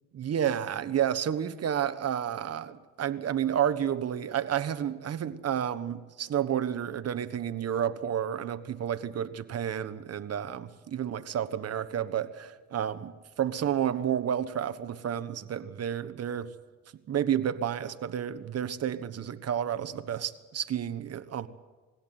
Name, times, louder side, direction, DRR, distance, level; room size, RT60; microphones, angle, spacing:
voice 1, 0.1-16.5 17.1-21.5, right 9 dB, 55° right, 1.3 m, -31 dB
21.0 x 16.5 x 9.4 m
cardioid pair, 90°, 30 cm